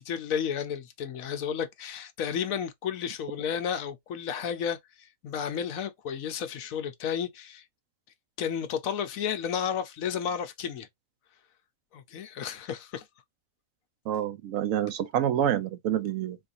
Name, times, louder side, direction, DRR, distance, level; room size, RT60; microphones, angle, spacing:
voice 1, 0.0-7.6 8.4-10.9 11.9-13.0, left 8 dB, 80° left, 1.1 m, -32 dB
voice 2, 14.1-16.4, right 10 dB, 75° right, 1.0 m, -27 dB
4.1 x 2.4 x 2.6 m
omnidirectional pair, 1.4 m